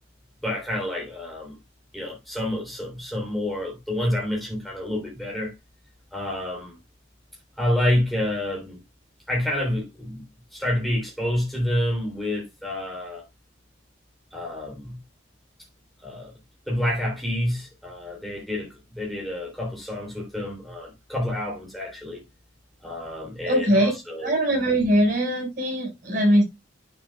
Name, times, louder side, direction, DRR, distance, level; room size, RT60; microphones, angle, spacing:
voice 1, 0.4-1.5 1.9-5.5 6.1-6.7 7.6-8.8 9.3-10.2 10.5-13.2 14.3-15.0 16.0-16.3 16.7-22.2 22.8-24.3, left 1 dB, ahead, 3.5 m, -28 dB
voice 2, 23.4-23.9 24.2-26.4, equal, 40° right, 6.2 m, -21 dB
10.5 x 6.9 x 2.4 m
head